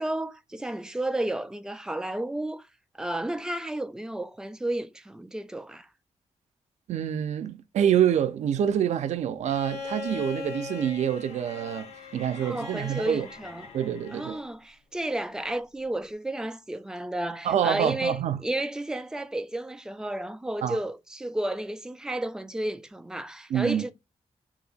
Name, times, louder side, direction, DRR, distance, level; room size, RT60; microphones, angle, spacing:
voice 1, 0.0-2.7 3.0-5.9 12.4-13.7 14.1-23.9, right 1 dB, 5° right, 0.3 m, -32 dB
voice 2, 6.9-13.3 13.7-14.4 17.4-18.4 20.6-20.8 23.5-23.8, right 9 dB, 85° right, 0.4 m, -26 dB
Bowed string instrument, 9.4-14.5 15.9-16.0, left 4 dB, 65° left, 1.0 m, -40 dB
2.8 x 2.6 x 4.0 m
wide cardioid pair, 160°, 12 cm